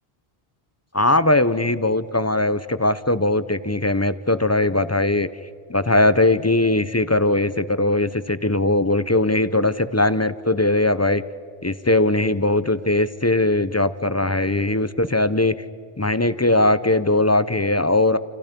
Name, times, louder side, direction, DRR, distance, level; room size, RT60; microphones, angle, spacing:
voice 1, 0.9-5.3 5.7-11.2 11.6-15.5 16.0-18.2, left 2 dB, 20° left, 14 dB, 0.6 m, -20 dB
29.5 x 28.0 x 5.3 m, 2.4 s
omnidirectional pair, 1.1 m